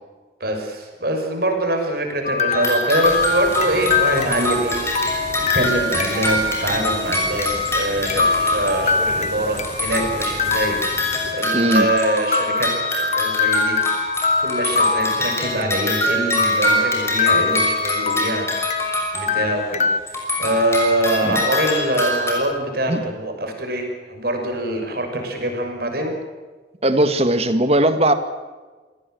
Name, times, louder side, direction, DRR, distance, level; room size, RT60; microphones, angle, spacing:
voice 1, 0.4-5.1 5.5-12.7 13.0-13.8 14.4-18.9 19.1-19.8 20.4-26.1, right 1 dB, 55° right, 3 dB, 6.0 m, -24 dB
sound 1, 2.2-6.4 6.7-6.8 7.4-7.5 8.1-10.1 10.4-11.4 11.7-15.9 16.4-18.9 19.3-20.0, left 5 dB, 35° left, 0.8 m, -24 dB
sound 2, 2.5-9.3 9.6-19.8 20.1-22.4, left 1 dB, 15° left, 5.9 m, -24 dB
sound 3, 3.0-11.3, right 2 dB, 75° right, 4.2 m, -36 dB
voice 2, 11.5-11.9 21.2-21.4 22.9-23.0 26.8-28.1, right 1 dB, 35° right, 9 dB, 1.9 m, -18 dB
27.0 x 18.0 x 7.9 m, 1.3 s
head